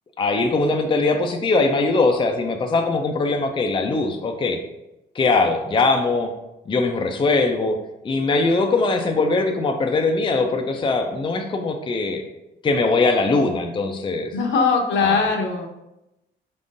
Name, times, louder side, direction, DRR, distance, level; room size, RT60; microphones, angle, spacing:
voice 1, 0.2-4.6 5.1-6.3 6.7-7.8 8.0-12.2 12.6-14.3 15.0-15.2, left 3 dB, 25° left, 4 dB, 0.4 m, -21 dB
voice 2, 14.3-15.7, left 5 dB, 70° left, 2 dB, 0.8 m, -20 dB
4.7 x 3.6 x 2.6 m, 0.92 s
cardioid pair, 90°, 20 cm